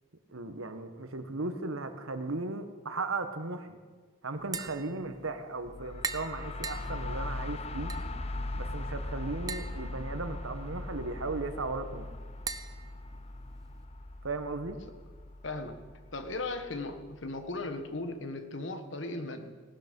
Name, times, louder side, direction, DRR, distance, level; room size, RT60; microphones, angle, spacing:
voice 1, 0.3-3.8 4.2-7.9 8.6-12.1 14.2-14.8, right 3 dB, 85° right, 8 dB, 1.3 m, -36 dB
Tap, 4.4-13.8, right 5 dB, 20° right, 0.6 m, -44 dB
sound 1, 5.7-17.3, left 2 dB, 30° left, 0.6 m, -40 dB
voice 2, 15.4-15.8 16.1-19.5, left 2 dB, 65° left, 7 dB, 1.5 m, -37 dB
18.0 x 12.0 x 5.4 m, 1.5 s
head